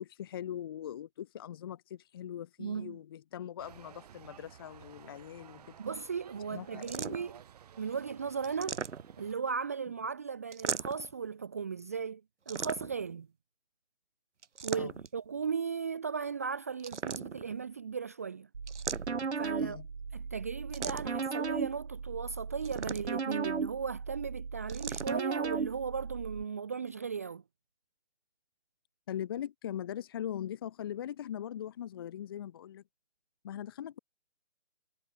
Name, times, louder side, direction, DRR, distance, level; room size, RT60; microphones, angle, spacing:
voice 1, 0.0-5.7 6.5-7.2 14.7-14.9 19.6-19.9 29.1-32.8 33.4-34.0, left 10 dB, 20° left, 1.1 m, -41 dB
voice 2, 2.6-3.0 5.8-7.4 7.8-8.8 9.2-12.2 12.5-13.3 14.6-18.5 19.4-19.8 20.1-27.4, right 6 dB, 15° right, 0.7 m, -36 dB
sound 1, 3.6-9.3, right 9 dB, 35° right, 5.3 m, -54 dB
sound 2, 6.8-7.4 8.4-9.3 10.5-11.1 12.5-13.1 14.4-15.2 16.8-17.6 18.7-19.4 20.7-21.3 22.6-23.3 24.7-25.2, right 6 dB, 85° right, 1.2 m, -38 dB
sound 3, 18.5-26.4, right 5 dB, 70° right, 3.8 m, -36 dB
hypercardioid pair, 165°, 35 cm